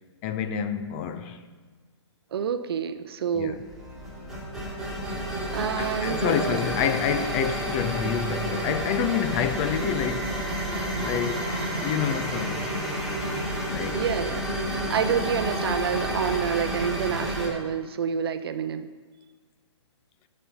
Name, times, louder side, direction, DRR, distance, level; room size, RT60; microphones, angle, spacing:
voice 1, 0.2-1.4 3.3-3.6 5.8-12.7 13.7-14.0, left 8 dB, 25° left, 0.5 m, -28 dB
voice 2, 2.3-3.6 5.5-6.6 13.9-18.9, right 7 dB, 55° right, 0.6 m, -28 dB
sound 1, 3.5-17.5, right 1 dB, ahead, 2.3 m, -30 dB
12.0 x 5.5 x 5.6 m
hypercardioid pair, 135°, 15 cm